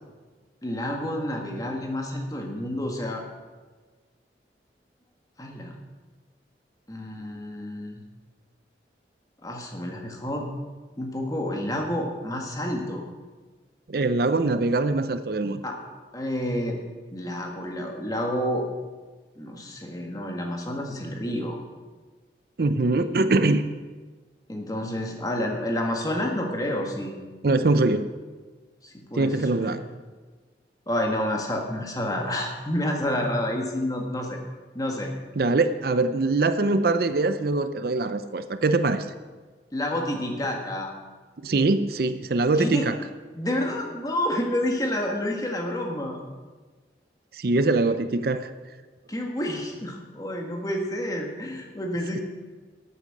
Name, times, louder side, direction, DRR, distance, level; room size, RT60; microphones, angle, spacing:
voice 1, 0.6-3.2 5.4-5.7 6.9-8.0 9.4-10.5 11.0-13.0 15.6-15.7 16.1-16.8 17.1-18.6 19.4-21.6 24.5-27.1 28.8-29.8 30.9-34.4 34.7-35.1 39.7-40.9 42.6-42.9 43.3-46.2 49.1-52.2, left 1 dB, 20° left, 1 dB, 1.7 m, -29 dB
voice 2, 13.9-15.6 22.6-23.6 27.4-28.1 29.2-29.8 35.4-39.1 41.4-43.0 47.3-48.5, right 3 dB, 60° right, 11 dB, 0.6 m, -23 dB
13.0 x 8.6 x 6.5 m, 1.4 s
head